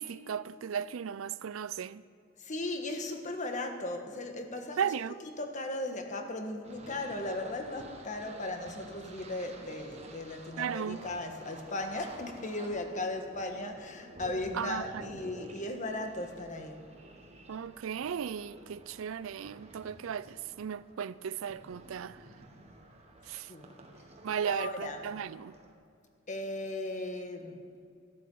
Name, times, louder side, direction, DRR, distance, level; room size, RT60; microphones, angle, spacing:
voice 1, 0.0-2.0 4.8-5.2 10.6-11.0 14.5-15.0 17.5-22.2 23.3-23.5 24.2-25.5, right 7 dB, 85° right, 0.4 m, -36 dB
voice 2, 2.4-4.8 5.3-16.8 23.5-23.7 24.5-25.0 26.3-27.6, left 2 dB, 40° left, 1.4 m, -37 dB
sound 1, 6.6-25.7, right 2 dB, 35° right, 1.5 m, -52 dB
12.5 x 11.0 x 7.0 m
head